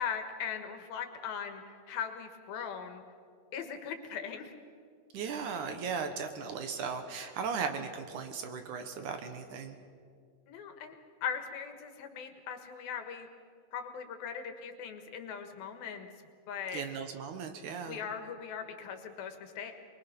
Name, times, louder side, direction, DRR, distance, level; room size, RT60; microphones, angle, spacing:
voice 1, 0.0-3.0 3.5-4.5 10.5-10.9 11.2-13.3 13.7-16.1 16.5-16.8 17.8-19.7, left 7 dB, 85° left, 6 dB, 3.3 m, -39 dB
voice 2, 5.1-9.8 16.7-18.0, right 6 dB, 65° right, 7 dB, 2.4 m, -37 dB
23.0 x 22.0 x 6.0 m, 2.2 s
omnidirectional pair, 4.1 m